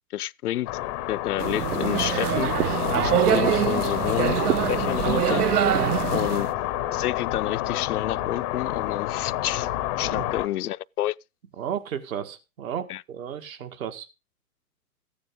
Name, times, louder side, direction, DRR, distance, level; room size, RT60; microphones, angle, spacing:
voice 1, 0.1-0.7 1.1-2.5 3.0-4.4 4.7-5.4 6.1-6.5 6.9-9.7 10.0-11.2 12.9-13.0, left 13 dB, 80° left, 0.5 m, -29 dB
sound 1, 0.7-10.5, left 14 dB, 20° left, 0.5 m, -29 dB
sound 2, 1.4-6.5, right 12 dB, 80° right, 0.6 m, -24 dB
voice 2, 5.7-6.1 10.0-10.3 11.6-14.1, right 9 dB, 65° right, 1.9 m, -33 dB
14.0 x 9.6 x 3.7 m
hypercardioid pair, 130°, 45 cm